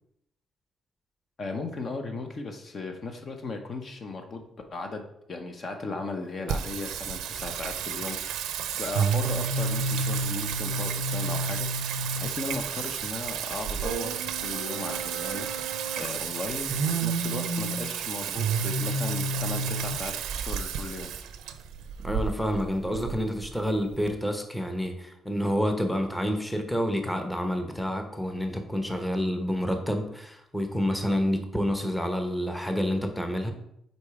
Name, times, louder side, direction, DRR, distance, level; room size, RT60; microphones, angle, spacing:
voice 1, 1.4-4.4 4.7-8.2 8.8-11.7 12.2-15.5 16.0-21.1, left 3 dB, 45° left, 5 dB, 0.8 m, -36 dB
Singing, 6.5-24.1, right 5 dB, 90° right, 0.5 m, -30 dB
voice 2, 22.0-33.5, equal, 5° left, 5 dB, 0.9 m, -28 dB
5.2 x 4.1 x 4.8 m, 0.78 s
cardioid pair, 90°, 0 cm